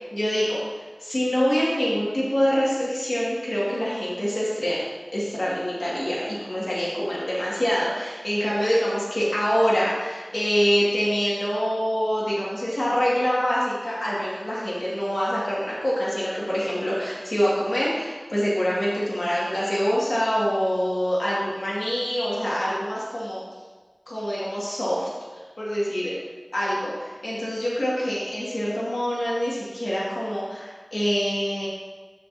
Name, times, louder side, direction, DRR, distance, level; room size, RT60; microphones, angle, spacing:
voice 1, 0.1-0.6 1.0-4.8 5.1-23.4 24.1-26.2 26.5-31.7, equal, 85° left, -7 dB, 1.9 m, -25 dB
14.5 x 5.1 x 2.7 m, 1.3 s
wide cardioid pair, 45°, 0 cm